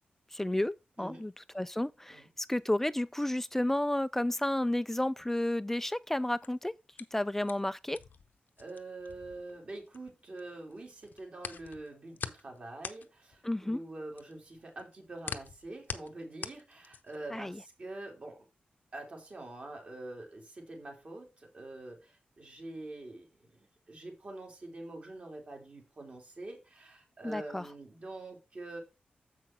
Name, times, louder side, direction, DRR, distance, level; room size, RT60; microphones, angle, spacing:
voice 1, 0.3-6.7 7.1-8.0 13.4-13.8 17.3-17.6 27.2-27.7, left 1 dB, 10° left, 0.4 m, -32 dB
voice 2, 1.0-1.3 2.1-2.3 8.6-18.5 18.9-28.8, right 2 dB, 40° right, 2.9 m, -45 dB
sound 1, 6.2-10.4 10.7-17.3, left 6 dB, 70° left, 0.8 m, -44 dB
7.4 x 6.0 x 4.5 m
wide cardioid pair, 105°, 3 cm